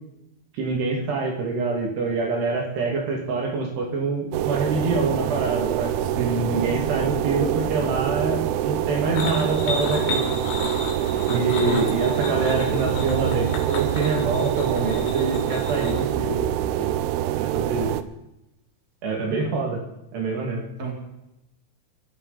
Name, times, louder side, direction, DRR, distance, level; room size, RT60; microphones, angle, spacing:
voice 1, 0.5-5.9 6.5-10.2 11.3-16.5 16.8-17.0 17.4-17.9 19.0-19.8 20.1-20.6, right 3 dB, 65° right, 0 dB, 4.3 m, -26 dB
sound 1, 4.3-18.0, right 11 dB, 85° right, 3.3 m, -25 dB
voice 2, 6.0-6.5 11.3-11.8 19.1-19.5 20.8-20.9, right 2 dB, 20° right, 0 dB, 3.3 m, -29 dB
sound 2, 9.1-16.1, left 3 dB, 85° left, 5.6 m, -33 dB
24.0 x 13.5 x 4.2 m, 0.91 s
omnidirectional pair, 5.5 m